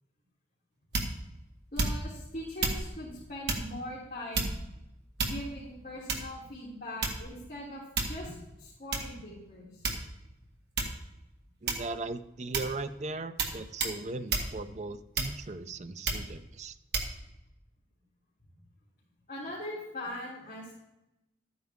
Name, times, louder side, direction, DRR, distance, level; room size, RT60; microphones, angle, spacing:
sound 1, 0.9-1.3 1.8-2.2 2.6-2.8 3.5-3.7 4.3-4.7 5.2-5.6 6.1-6.4 7.0-7.4 8.0-8.3 8.9-9.1 9.8-10.3 10.8-11.0 11.7-12.0 12.5-12.8 13.4-13.5 13.8-14.0 14.3-14.5 15.1-15.5 16.0-16.3 16.9-17.1, right 3 dB, 60° right, 1.8 m, -31 dB
voice 1, 1.7-4.6 5.2-9.9 19.3-20.7, left 1 dB, 45° left, -8 dB, 3.1 m, -41 dB
voice 2, 11.6-16.8, right 3 dB, 40° right, 11 dB, 0.5 m, -38 dB
13.0 x 9.4 x 3.6 m, 0.93 s
head